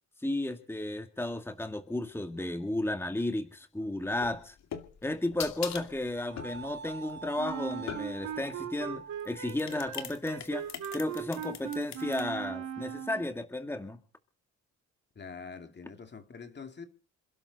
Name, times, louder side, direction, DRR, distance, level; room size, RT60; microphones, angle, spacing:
voice 1, 0.2-4.6 5.0-10.7 10.9-14.0, left 1 dB, 10° left, 1.9 m, -33 dB
sound 1, 4.1-8.4 9.2-12.2, left 8 dB, 65° left, 2.5 m, -42 dB
sound 2, 6.2-9.5, right 5 dB, 35° right, 1.8 m, -46 dB
Wind instrument woodwind instrument, 7.4-13.3, right 9 dB, 80° right, 2.5 m, -39 dB
voice 2, 15.2-16.9, left 5 dB, 35° left, 2.3 m, -45 dB
27.5 x 12.0 x 4.0 m
cardioid pair, 90°, 30 cm